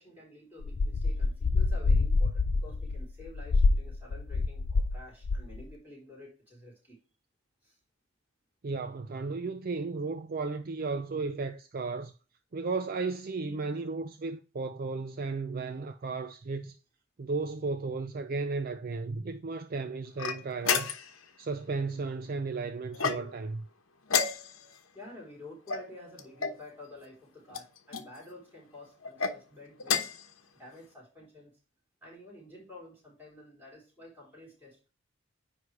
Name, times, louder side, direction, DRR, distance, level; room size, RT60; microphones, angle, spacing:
voice 1, 0.0-7.0 7.6-7.8 24.9-30.1 30.5-31.5 32.0-34.9, left 2 dB, 10° right, 3.9 m, -50 dB
sound 1, 0.6-5.0 5.2-5.6, left 3 dB, 60° left, 0.5 m, -26 dB
voice 2, 8.6-12.1 12.5-16.8 17.2-20.9 21.4-23.6, right 4 dB, 45° right, 0.4 m, -34 dB
sound 2, 20.2-21.2 22.9-23.5 24.1-24.8 25.7-26.6 27.5-28.1 29.0-29.4 29.8-30.3, left 6 dB, 80° left, 1.0 m, -31 dB
9.7 x 3.3 x 4.8 m
head